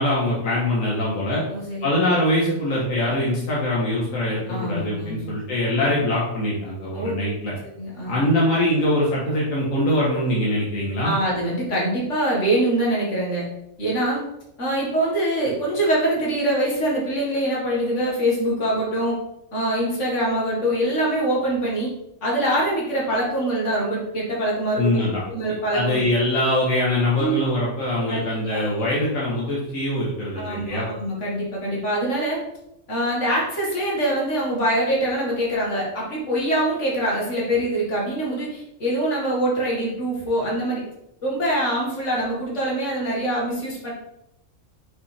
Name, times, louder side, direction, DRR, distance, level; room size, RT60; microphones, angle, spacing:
voice 1, 0.0-1.4 1.8-7.5 8.0-11.1 24.8-25.2 25.7-30.9, left 1 dB, 85° left, -5 dB, 1.7 m, -23 dB
voice 2, 1.5-1.9 4.5-5.3 6.9-7.1 7.6-8.3 11.0-13.5 13.8-14.2 14.6-19.2 19.5-21.9 22.2-25.0 25.3-26.1 27.2-27.4 28.1-28.2 28.5-28.6 30.4-32.4 32.9-40.8 41.2-43.9, right 1 dB, 65° left, -4 dB, 2.3 m, -24 dB
6.0 x 5.4 x 3.4 m, 0.82 s
omnidirectional pair, 1.3 m